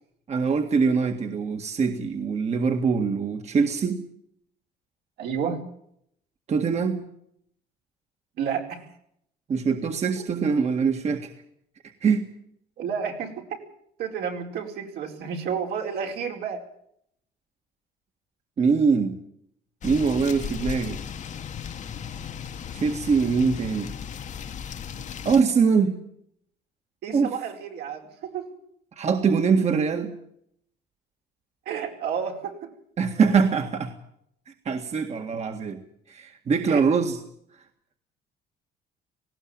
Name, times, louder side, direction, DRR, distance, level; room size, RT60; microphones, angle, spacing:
voice 1, 0.3-4.0 6.5-7.1 9.5-11.3 12.0-12.2 18.6-19.1 19.8-21.0 22.7-23.9 25.3-26.0 27.1-27.4 29.0-30.1 33.0-33.9 34.7-35.8 36.1-37.2, right 5 dB, 40° right, 5 dB, 1.9 m, -23 dB
voice 2, 5.2-5.6 8.4-8.9 10.2-10.3 12.8-13.6 14.0-16.6 27.0-28.5 31.6-32.7 36.7-36.8, right 7 dB, 75° right, 2 dB, 4.7 m, -31 dB
sound 1, 19.8-25.4, left 8 dB, 45° left, 1.4 m, -36 dB
19.0 x 16.5 x 8.8 m, 0.71 s
cardioid pair, 110°, 17 cm